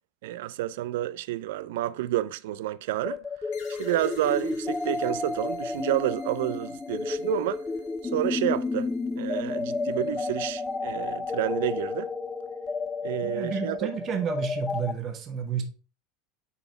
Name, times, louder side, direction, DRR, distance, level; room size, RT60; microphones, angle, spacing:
voice 1, 0.2-3.2 3.8-7.6 8.1-8.9 9.2-12.1 13.0-13.9, right 14 dB, 75° right, 0.3 m, -29 dB
sound 1, 3.0-14.9, left 3 dB, 15° left, 0.4 m, -31 dB
sound 2, 3.5-10.8, left 6 dB, 70° left, 2.1 m, -55 dB
voice 2, 13.2-15.6, right 7 dB, 40° right, 1.3 m, -31 dB
6.8 x 4.1 x 3.5 m
supercardioid pair, 105°, 0 cm